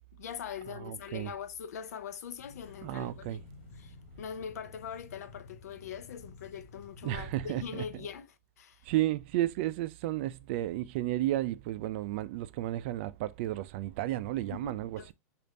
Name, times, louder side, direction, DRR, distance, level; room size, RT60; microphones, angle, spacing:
voice 1, 0.1-3.4 3.8-8.9 14.4-15.1, left 8 dB, 85° left, 0.6 m, -42 dB
voice 2, 0.7-1.3 2.8-3.4 7.0-8.1 8.8-15.1, right 14 dB, 45° right, 0.4 m, -33 dB
sound 1, 2.4-7.7, left 4 dB, 45° left, 2.2 m, -52 dB
5.1 x 2.5 x 4.0 m
supercardioid pair, 155°, 8 cm